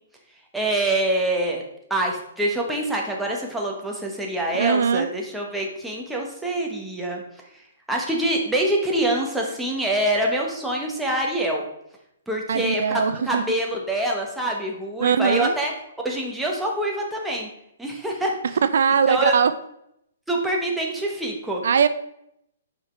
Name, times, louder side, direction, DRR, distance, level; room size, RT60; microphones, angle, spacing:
voice 1, 0.5-1.6 1.9-7.2 7.9-11.6 12.3-13.0 13.3-15.7 16.0-17.5 17.8-18.3 19.1-19.4 20.3-21.6, right 1 dB, 5° right, -2 dB, 1.1 m, -25 dB
voice 2, 4.5-5.1 12.5-13.4 15.0-15.5 18.6-19.5 21.6-21.9, right 6 dB, 70° right, 11 dB, 0.4 m, -20 dB
5.6 x 5.1 x 4.4 m, 0.77 s
hypercardioid pair, 155°, 0 cm